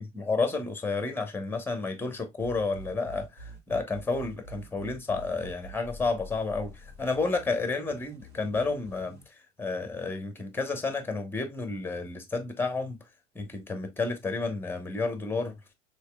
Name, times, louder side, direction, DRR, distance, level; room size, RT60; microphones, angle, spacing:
voice 1, 0.0-6.7 7.0-9.2 9.6-13.0 13.3-15.5, left 3 dB, 5° left, 1.1 m, -31 dB
sound 1, 2.4-9.2, right 1 dB, 45° right, 2.2 m, -46 dB
6.3 x 3.3 x 2.3 m
figure-of-eight pair, 85°, 36 cm